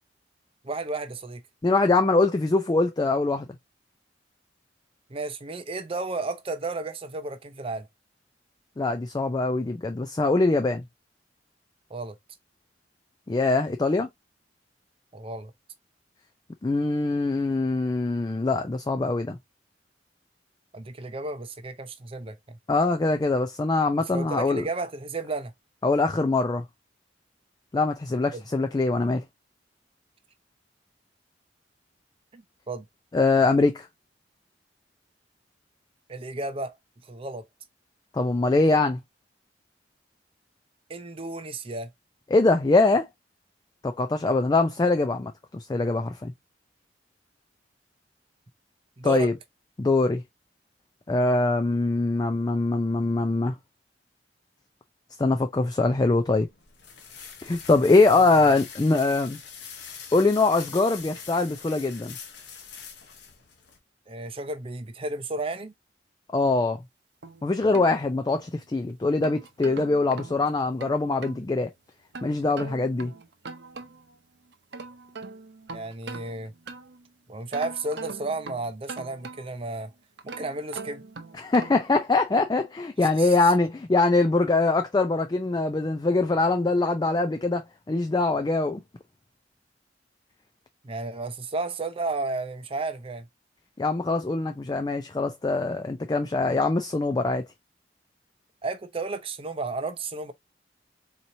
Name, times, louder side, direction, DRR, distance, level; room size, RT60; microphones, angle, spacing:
voice 1, 0.6-1.4 5.1-7.9 11.9-12.2 15.1-15.5 20.7-22.6 24.1-25.5 28.3-28.4 32.3-32.9 36.1-36.8 37.1-37.4 40.9-41.9 49.0-49.3 58.1-58.5 64.1-65.7 75.7-76.5 77.3-79.9 80.2-81.0 83.0-83.5 90.8-93.3 98.6-100.3, right 3 dB, 30° right, 0.6 m, -33 dB
voice 2, 1.6-3.5 8.8-10.8 13.3-14.1 16.6-19.4 22.7-24.6 25.8-26.6 27.7-29.2 33.1-33.9 38.1-39.0 42.3-43.1 43.8-46.3 49.0-49.3 49.8-50.2 51.1-53.5 55.2-56.5 57.4-59.4 60.1-62.2 66.3-66.8 67.4-71.7 72.2-73.1 81.3-88.8 93.8-97.4, left 3 dB, 20° left, 0.4 m, -23 dB
sound 1, 55.9-63.8, left 6 dB, 70° left, 1.0 m, -43 dB
sound 2, 67.2-68.6 69.0-71.4 72.1-74.2 74.5-77.1 77.5-79.7 80.2-81.9, right 3 dB, 65° right, 0.7 m, -42 dB
4.1 x 3.0 x 2.6 m
head